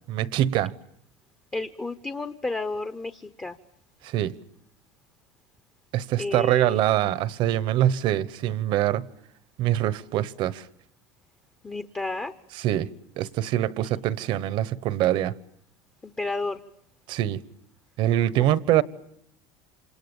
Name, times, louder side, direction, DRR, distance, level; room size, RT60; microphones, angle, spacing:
voice 1, 0.1-0.7 4.0-4.3 5.9-9.1 9.6-10.7 12.5-12.9 13.2-15.4 17.1-17.4 18.0-18.8, right 13 dB, 50° right, 1.1 m, -24 dB
voice 2, 1.5-3.6 6.2-6.8 11.6-12.3 16.0-16.6, left 3 dB, 15° left, 1.0 m, -31 dB
27.5 x 27.5 x 7.1 m
supercardioid pair, 140°, 10 cm